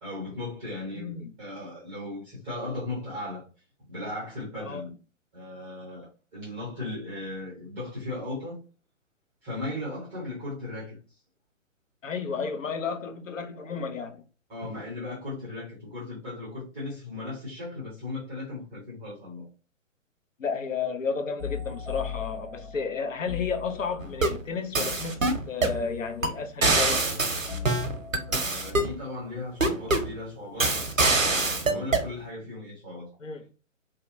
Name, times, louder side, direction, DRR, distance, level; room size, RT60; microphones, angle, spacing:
voice 1, 0.0-3.4 3.9-4.9 5.3-8.6 9.4-11.0 14.5-19.5 28.2-33.1, left 2 dB, 5° right, 0.5 m, -37 dB
voice 2, 1.0-1.3 4.6-4.8 12.0-14.2 20.4-27.1 33.2-33.5, left 5 dB, 75° left, 0.7 m, -32 dB
sound 1, 21.4-24.4 25.6-28.9, left 7 dB, 50° left, 1.4 m, -39 dB
sound 2, 24.0-24.4 24.8-25.8 26.2-26.3 26.6-28.9 29.6-30.1 30.6-32.1, right 2 dB, 90° right, 0.7 m, -24 dB
2.7 x 2.2 x 2.5 m
figure-of-eight pair, 125°, 39 cm